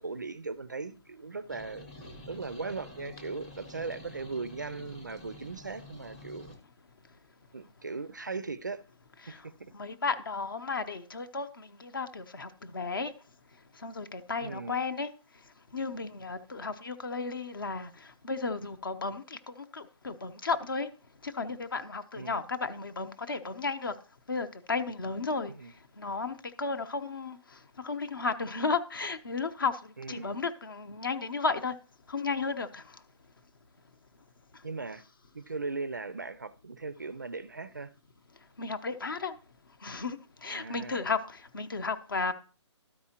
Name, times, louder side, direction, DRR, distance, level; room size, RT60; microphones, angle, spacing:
voice 1, 0.0-1.9 2.3-6.6 7.5-8.8 9.3-9.4 14.4-14.8 22.2-22.4 25.5-25.7 30.0-30.3 34.6-35.0 35.3-37.9 40.5-41.1, right 4 dB, 40° right, 0.4 m, -38 dB
sound 1, 1.5-6.6, left 1 dB, 15° left, 0.8 m, -48 dB
voice 2, 9.7-13.1 13.8-15.1 15.7-17.9 18.2-20.9 21.2-23.9 24.3-25.5 26.0-27.4 27.8-31.7 32.1-32.8 38.6-39.3 39.8-42.3, left 4 dB, 45° left, 0.8 m, -33 dB
13.0 x 4.8 x 2.9 m
hypercardioid pair, 180°, 15 cm